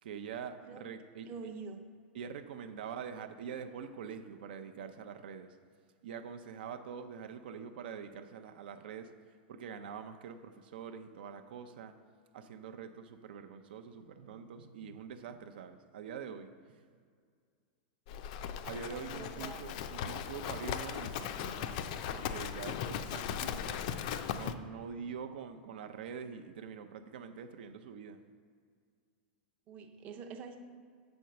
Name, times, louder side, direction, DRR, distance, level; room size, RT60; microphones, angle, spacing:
voice 1, 0.0-1.5 2.1-5.6 6.0-11.9 12.3-16.9 18.6-21.8 22.1-23.8 24.3-28.2, right 7 dB, 70° right, 8 dB, 0.6 m, -45 dB
voice 2, 1.3-1.8 18.7-19.6 22.8-23.0 29.7-30.6, right 5 dB, 30° right, 4 dB, 0.6 m, -46 dB
Livestock farm animals working animals, 18.1-24.5, left 9 dB, 50° left, 0.4 m, -38 dB
6.7 x 4.4 x 6.4 m, 2.1 s
supercardioid pair, 160°, 5 cm